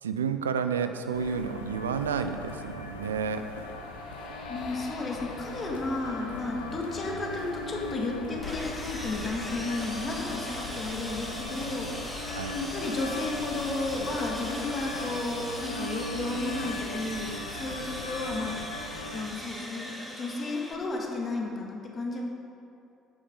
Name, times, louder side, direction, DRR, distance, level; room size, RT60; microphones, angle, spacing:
voice 1, 0.0-3.4 12.4-12.5, right 6 dB, 75° right, 9 dB, 0.5 m, -30 dB
sound 1, 1.1-19.2, left 2 dB, 75° left, 0.9 m, -39 dB
sound 2, 3.3-16.5, left 3 dB, 50° left, 1.1 m, -49 dB
voice 2, 4.5-12.2 12.5-18.6 19.1-22.2, left 2 dB, 35° left, 0 dB, 1.8 m, -33 dB
Sawing, 8.4-20.7, equal, ahead, 2.2 m, -40 dB
10.5 x 8.6 x 5.2 m, 2.7 s
figure-of-eight pair, 55°, 0 cm